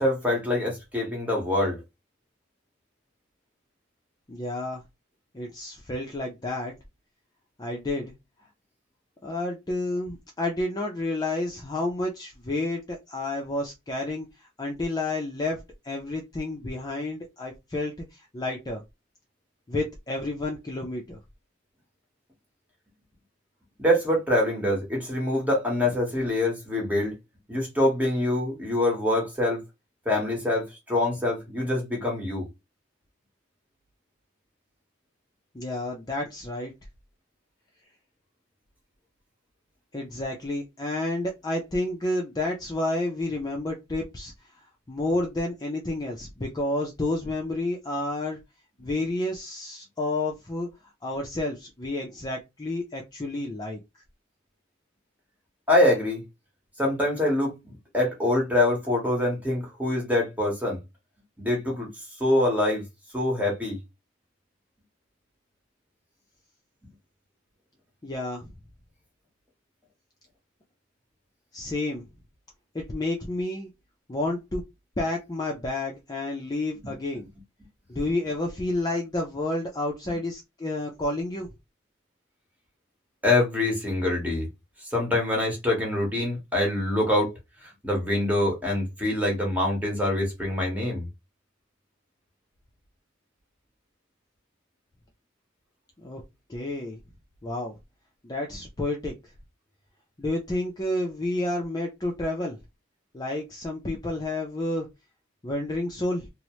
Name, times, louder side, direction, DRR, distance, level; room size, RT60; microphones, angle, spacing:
voice 1, 0.0-1.8 23.8-27.1 27.5-29.6 30.0-32.5 55.7-56.2 56.8-60.8 61.4-61.9 62.2-62.8 63.1-63.8 76.8-76.9 83.2-84.5 84.9-87.3 87.6-91.1, left 1 dB, 10° right, 1.1 m, -25 dB
voice 2, 4.3-4.8 5.3-6.7 7.6-8.1 9.2-18.8 19.7-21.2 35.5-36.7 39.9-44.3 44.9-48.4 48.8-50.7 51.0-53.8 68.0-68.5 71.5-72.1 72.7-73.7 74.1-74.6 75.0-77.3 77.9-81.5 96.0-96.2 96.5-97.0 97.4-97.8 98.2-99.1 100.2-102.6 103.1-104.9 105.4-106.3, left 2 dB, 20° left, 0.4 m, -30 dB
2.8 x 2.0 x 3.0 m
head